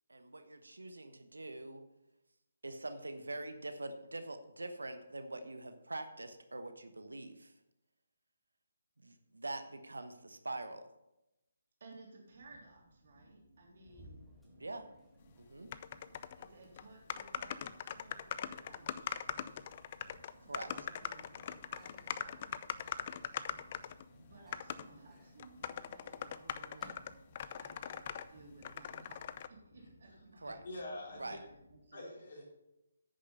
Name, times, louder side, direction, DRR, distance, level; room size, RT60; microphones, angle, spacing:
voice 1, 0.1-1.8 2.6-7.5 9.0-10.8 14.0-14.1 14.4-14.9 15.4-15.7 20.5-20.7 30.4-30.6 31.2-31.4, right 2 dB, 85° right, 8 dB, 1.0 m, -44 dB
voice 2, 11.8-14.3 16.4-19.6 20.4-21.3 21.7-23.0 24.3-27.0 27.6-30.6 31.1-32.0, right 3 dB, 55° right, -1 dB, 3.1 m, -58 dB
sound 1, 12.2-31.8, equal, 90° left, 2.6 m, -63 dB
Microwave oven, 13.9-28.9, left 1 dB, 5° left, 1.8 m, -63 dB
sound 2, 15.7-16.5 16.8-16.9 17.1-24.0 24.5-24.9 25.4-28.3 28.6-29.5, left 9 dB, 40° left, 0.5 m, -41 dB
voice 3, 30.6-31.4 31.9-32.4, left 1 dB, 55° left, -2 dB, 3.6 m, -45 dB
9.6 x 6.6 x 5.5 m, 0.92 s
figure-of-eight pair, 145°, 0 cm